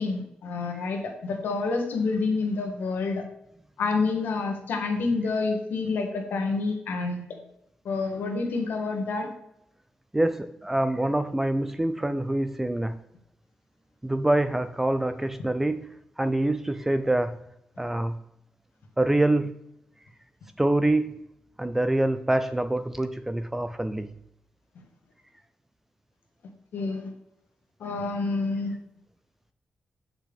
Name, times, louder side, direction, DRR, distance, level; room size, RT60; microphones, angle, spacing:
voice 1, 0.0-3.2 3.8-7.2 7.8-9.3 26.7-27.1 27.8-28.7, left 3 dB, 90° left, 3 dB, 1.6 m, -28 dB
voice 2, 10.1-13.0 14.0-15.9 16.2-17.4 17.8-18.1 19.0-19.5 20.6-21.2 21.6-24.1, right 1 dB, 10° right, 11 dB, 0.3 m, -25 dB
8.8 x 6.0 x 3.5 m, 0.80 s
wide cardioid pair, 130°, 3 cm